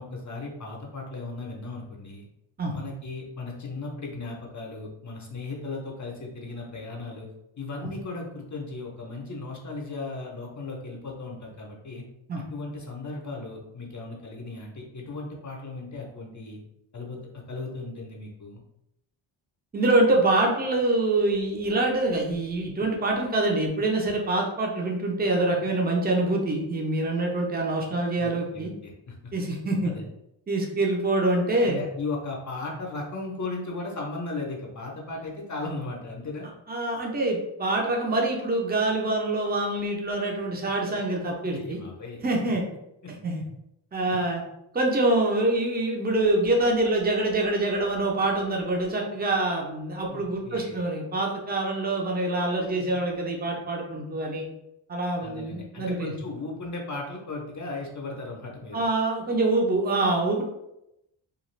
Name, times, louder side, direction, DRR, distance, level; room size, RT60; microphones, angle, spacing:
voice 1, 0.0-2.3 2.7-7.3 7.6-12.0 12.5-16.6 16.9-18.6 28.2-29.3 29.8-30.1 31.6-36.5 41.5-42.2 44.0-44.2 50.1-50.8 55.2-58.8, left 3 dB, 40° left, -1 dB, 0.6 m, -36 dB
voice 2, 19.7-28.7 29.3-29.9 30.5-31.8 36.7-41.8 42.2-42.6 43.2-43.4 43.9-44.4 44.7-54.5 54.9-56.1 58.7-60.4, right 2 dB, 20° right, 0 dB, 0.6 m, -25 dB
2.4 x 2.3 x 3.1 m, 0.85 s
wide cardioid pair, 95°, 47 cm